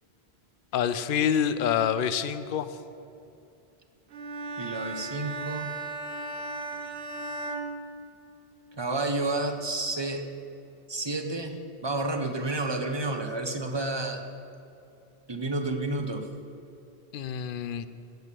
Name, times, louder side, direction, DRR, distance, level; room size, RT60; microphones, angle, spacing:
voice 1, 0.7-2.7 17.1-17.9, left 8 dB, 60° left, 13 dB, 0.7 m, -27 dB
Bowed string instrument, 4.1-8.6, right 2 dB, 90° right, 1.2 m, -36 dB
voice 2, 4.6-5.7 8.8-10.3 10.9-14.2 15.3-16.3, right 2 dB, 25° right, 6 dB, 0.8 m, -30 dB
9.2 x 7.9 x 7.6 m, 2.8 s
omnidirectional pair, 1.1 m